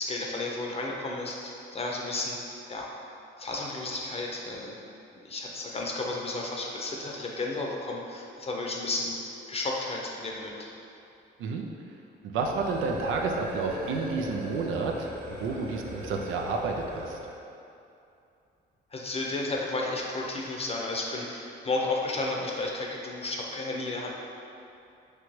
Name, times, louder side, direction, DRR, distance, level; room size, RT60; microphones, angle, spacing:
voice 1, 0.0-2.9 3.4-4.8 5.2-10.7 18.9-24.1, left 2 dB, 30° left, -1 dB, 0.6 m, -33 dB
voice 2, 12.2-17.2, right 4 dB, 80° right, 2 dB, 0.5 m, -30 dB
sound 1, 12.4-17.4, equal, 50° right, 0.8 m, -39 dB
3.8 x 3.3 x 3.1 m, 2.7 s
cardioid pair, 90°, 20 cm